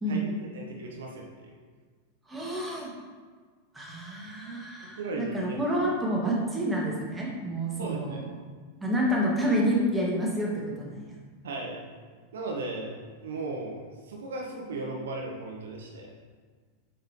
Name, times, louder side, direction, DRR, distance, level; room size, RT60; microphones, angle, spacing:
voice 1, 0.0-1.5 5.0-5.6 7.8-8.3 11.4-11.8 12.3-12.9 13.2-16.1, right 2 dB, 60° right, -1 dB, 1.0 m, -36 dB
voice 2, 2.3-2.9 3.7-8.2 8.8-10.5 10.8-11.0, equal, 10° right, -3 dB, 1.7 m, -28 dB
8.3 x 5.4 x 3.0 m, 1.5 s
figure-of-eight pair, 90°, 0 cm